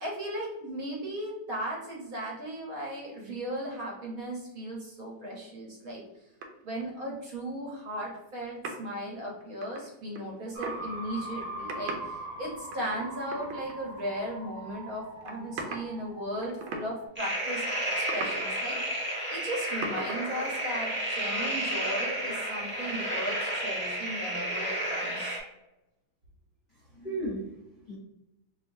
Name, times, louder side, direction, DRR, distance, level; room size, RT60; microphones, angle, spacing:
voice 1, 0.0-6.0 6.6-17.6 18.0-25.4, right 1 dB, 55° right, -2 dB, 1.1 m, -37 dB
sound 1, 6.4-6.8 8.0-8.2 8.6-8.8 9.4-10.8 11.3-12.1 12.7-14.0 14.3-14.4 15.2-16.0 16.3-16.9 17.2-17.3 18.0-18.4 19.3-19.4 19.5-20.2, right 3 dB, 90° right, 1.5 m, -38 dB
sound 2, 10.5-17.1, right 1 dB, 70° right, 0.4 m, -42 dB
sound 3, 17.2-25.4, right 1 dB, 10° right, 0.6 m, -32 dB
voice 2, 26.7-28.0, right 1 dB, 40° left, -7 dB, 0.6 m, -36 dB
4.2 x 3.0 x 2.6 m, 0.91 s
omnidirectional pair, 2.3 m